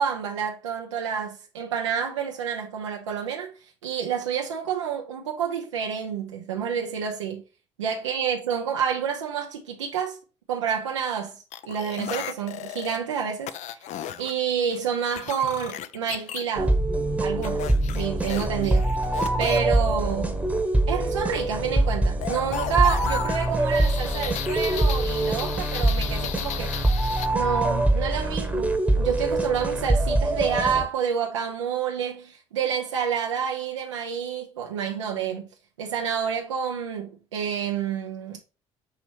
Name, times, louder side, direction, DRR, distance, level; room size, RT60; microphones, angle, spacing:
voice 1, 0.0-3.5 3.8-7.4 7.8-10.2 10.5-13.8 14.2-16.8 17.2-18.9 19.4-20.4 20.9-26.8 27.3-35.5 35.8-38.4, right 7 dB, 85° right, 0.5 m, -28 dB
sound 1, 11.5-13.0 13.5-14.3 14.7-16.4 17.4-19.6 22.2-27.3, left 11 dB, 50° left, 0.4 m, -35 dB
sound 2, 16.6-30.8, right 1 dB, 10° right, 0.9 m, -24 dB
5.7 x 2.9 x 3.0 m
hypercardioid pair, 50°, 15 cm